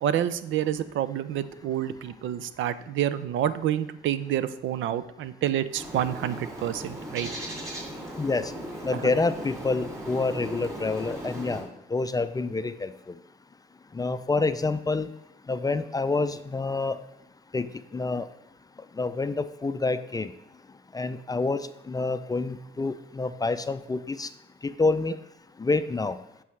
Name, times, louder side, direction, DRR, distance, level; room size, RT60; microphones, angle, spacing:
voice 1, 0.0-7.3, right 11 dB, 75° right, 13 dB, 0.5 m, -28 dB
Bird, 5.7-11.7, equal, 15° right, 2.8 m, -37 dB
voice 2, 8.2-8.5 8.8-12.9 13.9-15.1 15.5-17.0 17.5-17.7 17.9-18.3 19.0-20.3 20.9-24.3 24.6-25.1 25.6-26.2, left 3 dB, 20° left, 11 dB, 0.4 m, -27 dB
9.2 x 6.2 x 3.3 m, 0.85 s
cardioid pair, 90°, 20 cm